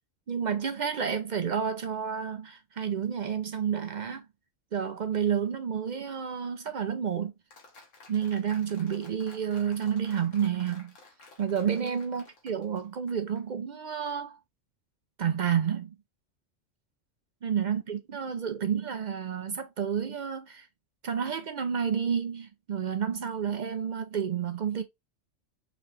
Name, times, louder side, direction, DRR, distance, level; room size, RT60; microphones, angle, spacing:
voice 1, 0.3-4.3 4.7-7.3 8.1-10.9 11.4-14.4 15.2-15.9 17.4-20.7 21.0-24.8, right 7 dB, 55° right, 0.5 m, -30 dB
Applause, 7.5-13.4, left 3 dB, 85° left, 1.5 m, -54 dB
3.9 x 3.0 x 3.2 m
omnidirectional pair, 1.3 m